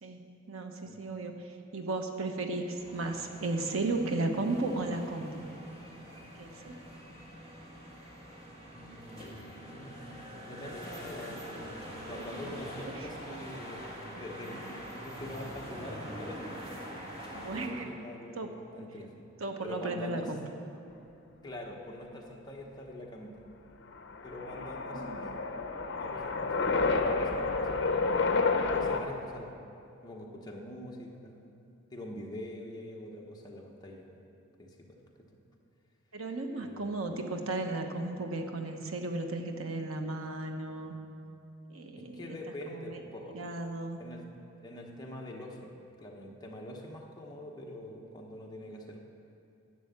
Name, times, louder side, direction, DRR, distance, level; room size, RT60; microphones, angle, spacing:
voice 1, 0.0-5.4 6.4-6.8 17.3-17.9 18.3-18.6 19.4-20.5 24.9-25.4 36.1-41.0 41.7-42.4 42.7-43.0 43.3-44.0, right 2 dB, 85° right, 5 dB, 1.0 m, -35 dB
sound 1, 2.8-17.7, equal, 25° right, 1.7 m, -44 dB
voice 2, 8.7-13.8 14.1-16.6 16.9-17.0 17.5-19.1 19.6-20.3 21.4-23.4 24.2-25.4 25.9-27.8 28.7-29.5 30.0-31.5 31.9-34.2 34.6-35.0 36.6-37.0 42.0-43.4 44.0-44.2 44.6-45.7 46.0-49.0, left 1 dB, 20° left, -1 dB, 1.1 m, -44 dB
sound 2, 23.9-29.0, left 4 dB, 55° left, 0.8 m, -30 dB
11.0 x 8.4 x 7.1 m, 2.7 s
head